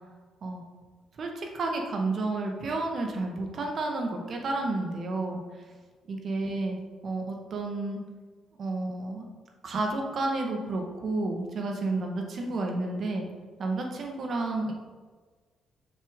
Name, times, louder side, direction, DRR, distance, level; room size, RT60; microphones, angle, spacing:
voice 1, 1.2-5.4 6.1-8.0 8.6-9.2 9.6-13.3 13.6-14.7, right 2 dB, 55° right, 2 dB, 1.4 m, -31 dB
6.6 x 6.5 x 3.7 m, 1.4 s
cardioid pair, 90°, 0 cm